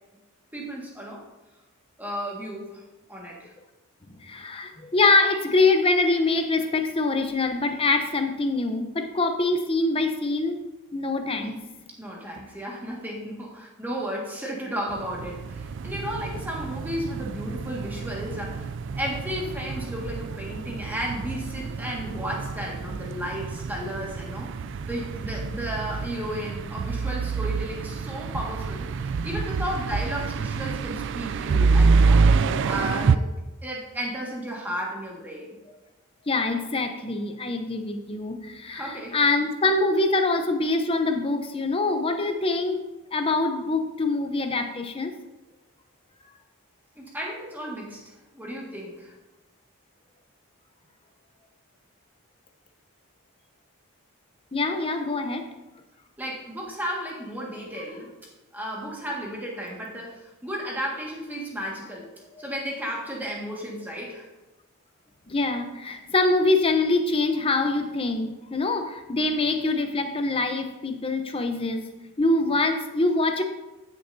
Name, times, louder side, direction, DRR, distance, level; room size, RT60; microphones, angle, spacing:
voice 1, 0.5-1.2 2.0-2.8 3.1-3.5 11.3-11.5 12.0-24.5 24.9-33.2 33.6-35.6 38.7-39.2 47.0-48.0 48.3-49.1 56.2-58.1 58.5-62.1 62.4-64.3, equal, 10° right, -3 dB, 1.7 m, -34 dB
voice 2, 4.2-10.6 10.9-11.6 36.3-42.8 43.1-45.1 54.5-55.4 62.3-62.4 65.3-71.8 72.2-73.4, left 3 dB, 25° left, 6 dB, 0.7 m, -24 dB
sound 1, 14.9-33.2, right 4 dB, 55° right, 0.3 m, -27 dB
14.0 x 6.7 x 2.7 m, 1.1 s
head